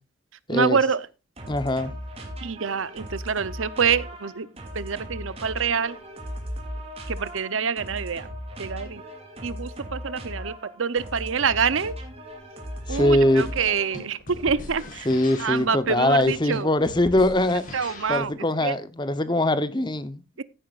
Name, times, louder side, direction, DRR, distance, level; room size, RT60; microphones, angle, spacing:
voice 1, 0.5-1.1 2.4-4.5 4.7-6.0 7.1-8.3 8.6-9.0 9.4-11.9 12.9-15.1 15.4-16.7 17.7-18.3 18.6-18.7 20.4-20.5, right 6 dB, 75° right, 0.7 m, -26 dB
sound 1, 1.4-14.1, equal, 30° right, 2.8 m, -37 dB
voice 2, 1.5-1.9 12.9-13.5 15.1-17.6 18.1-20.2, left 1 dB, 20° left, 0.9 m, -22 dB
sound 2, 12.9-18.3, left 2 dB, 40° left, 3.7 m, -41 dB
15.5 x 9.4 x 2.5 m
head